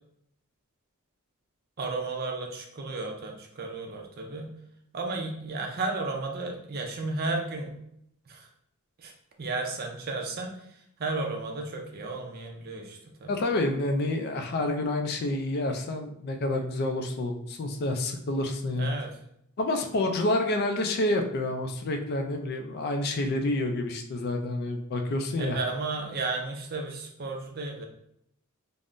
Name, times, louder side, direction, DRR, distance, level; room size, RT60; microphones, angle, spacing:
voice 1, 1.8-4.5 4.9-7.8 8.3-8.5 9.0-9.1 9.4-10.7 11.0-13.3 18.7-19.1 25.4-27.8, right 3 dB, 45° right, 2 dB, 0.4 m, -33 dB
voice 2, 13.3-18.9 19.6-25.6, left 2 dB, 45° left, 5 dB, 0.3 m, -28 dB
3.4 x 2.0 x 2.5 m, 0.74 s
head